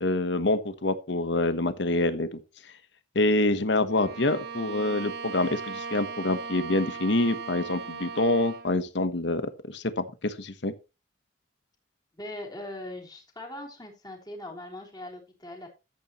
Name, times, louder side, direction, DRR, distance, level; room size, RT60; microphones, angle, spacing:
voice 1, 0.0-2.4 3.1-9.4 9.7-10.7, left 2 dB, 70° left, 1.1 m, -26 dB
Bowed string instrument, 3.9-8.7, right 5 dB, 60° right, 1.4 m, -38 dB
voice 2, 12.1-15.7, left 1 dB, 20° left, 3.5 m, -40 dB
13.0 x 8.6 x 3.0 m
head